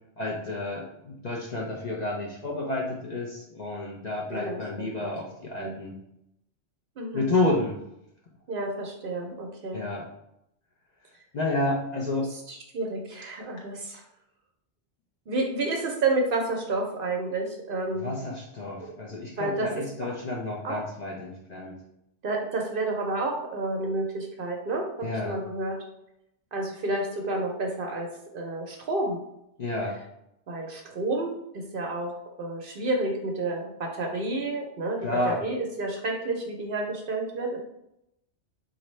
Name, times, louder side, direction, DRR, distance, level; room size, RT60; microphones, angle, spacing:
voice 1, 0.2-6.0 7.1-7.8 9.7-10.1 11.3-12.3 18.0-21.8 25.0-25.4 29.6-30.0 35.0-35.4, left 2 dB, 50° left, -3 dB, 0.5 m, -30 dB
voice 2, 4.3-5.1 5.6-5.7 7.0-7.3 8.5-9.8 12.2-14.0 15.3-18.1 18.8-18.9 19.4-19.7 20.0-20.1 20.6-20.8 22.2-25.8 26.5-29.2 30.5-32.1 32.4-35.0 35.2-37.6, right 2 dB, 60° right, 1 dB, 0.7 m, -30 dB
4.1 x 2.5 x 3.1 m, 0.81 s
omnidirectional pair, 1.2 m